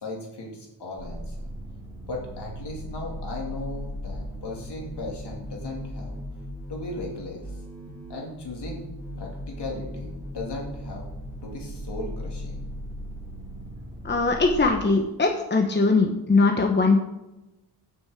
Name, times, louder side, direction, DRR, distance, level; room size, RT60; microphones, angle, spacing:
voice 1, 0.0-1.3 2.1-6.2 6.7-7.4 8.1-8.9 9.2-11.1 11.4-12.6, left 2 dB, 65° left, -1 dB, 3.1 m, -37 dB
sound 1, 1.0-14.7, equal, 10° right, 3.0 m, -37 dB
voice 2, 14.0-17.0, left 3 dB, 25° left, 3 dB, 1.0 m, -21 dB
8.4 x 6.2 x 8.1 m, 0.99 s
wide cardioid pair, 140°, 44 cm